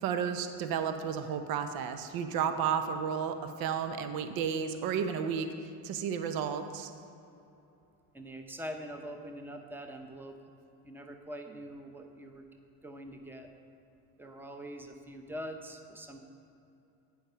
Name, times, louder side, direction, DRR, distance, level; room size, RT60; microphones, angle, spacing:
voice 1, 0.0-6.9, right 7 dB, 65° right, 8 dB, 0.8 m, -32 dB
voice 2, 8.1-10.4 10.8-12.4 12.8-13.5 14.2-16.2, equal, 5° right, 4 dB, 0.8 m, -43 dB
9.3 x 6.6 x 5.5 m, 2.7 s
cardioid pair, 105°, 38 cm